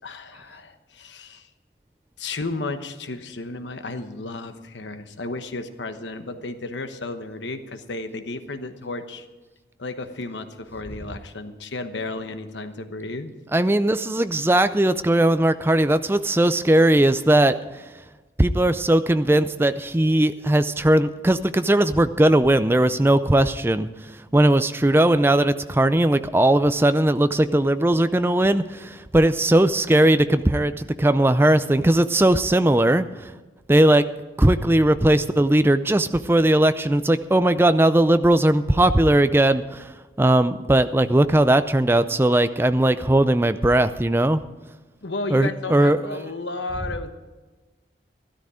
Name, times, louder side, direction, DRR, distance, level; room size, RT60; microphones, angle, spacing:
voice 1, 0.0-1.5 2.2-9.3 9.8-13.3 45.0-47.1, left 2 dB, 85° left, 8 dB, 1.1 m, -33 dB
voice 2, 13.5-17.6 18.4-23.9 24.3-33.3 33.7-34.1 34.4-39.9 40.2-44.4 45.3-46.2, right 1 dB, 15° right, 12 dB, 0.4 m, -19 dB
13.5 x 13.0 x 4.9 m, 1.2 s
head